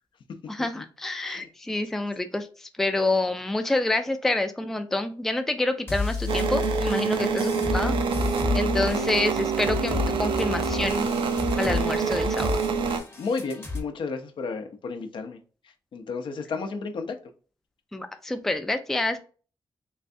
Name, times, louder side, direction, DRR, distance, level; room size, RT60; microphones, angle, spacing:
voice 1, 0.5-7.9 8.5-11.1 11.5-12.5 17.9-19.2, left 2 dB, 5° left, 7 dB, 0.3 m, -27 dB
sound 1, 5.9-13.8, left 3 dB, 25° left, 0.9 m, -31 dB
sound 2, 6.3-13.0, right 5 dB, 85° right, 0.5 m, -26 dB
voice 2, 13.2-15.4 15.9-17.2, left 4 dB, 70° left, 6 dB, 0.6 m, -32 dB
3.4 x 3.1 x 2.6 m, 0.39 s
wide cardioid pair, 145°, 9 cm